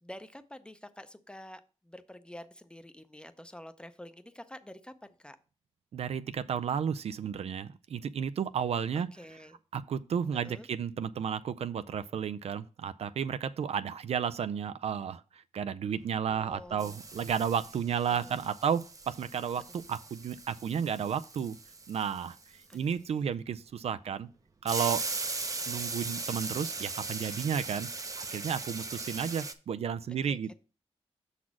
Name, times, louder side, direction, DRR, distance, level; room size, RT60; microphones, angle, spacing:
voice 1, 0.0-5.4 8.9-9.6 10.4-10.7 16.3-17.0 18.1-18.4 22.7-23.3 30.2-30.5, left 1 dB, 10° left, 0.6 m, -48 dB
voice 2, 5.9-9.1 9.7-21.6 21.9-22.4 22.7-24.3 24.6-25.0 25.7-27.9 28.1-30.5, right 7 dB, 65° right, 0.4 m, -32 dB
sound 1, 16.1-16.5 16.8-23.1 24.7-29.5, right 3 dB, 30° right, 0.6 m, -39 dB
6.2 x 4.1 x 5.9 m
cardioid pair, 85°, 12 cm